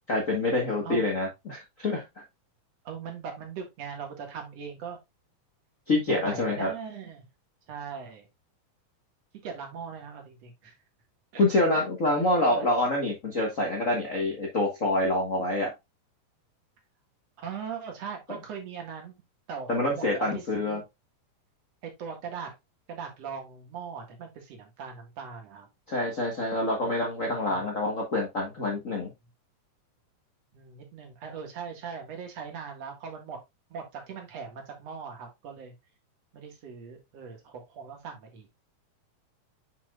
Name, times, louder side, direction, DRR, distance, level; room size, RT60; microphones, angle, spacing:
voice 1, 0.1-2.0 5.9-6.7 11.3-15.7 19.7-20.8 25.9-29.1, left 2 dB, 70° left, -1 dB, 0.7 m, -26 dB
voice 2, 2.8-5.0 6.1-7.2 7.7-8.3 9.4-10.7 11.3-11.4 11.7-12.7 17.4-19.2 19.5-20.8 21.8-22.5 22.9-25.7 27.3-27.6 30.5-33.4 33.7-35.7 36.3-38.5, right 6 dB, 55° right, 3 dB, 2.6 m, -40 dB
7.2 x 6.0 x 2.3 m, 0.21 s
omnidirectional pair, 3.9 m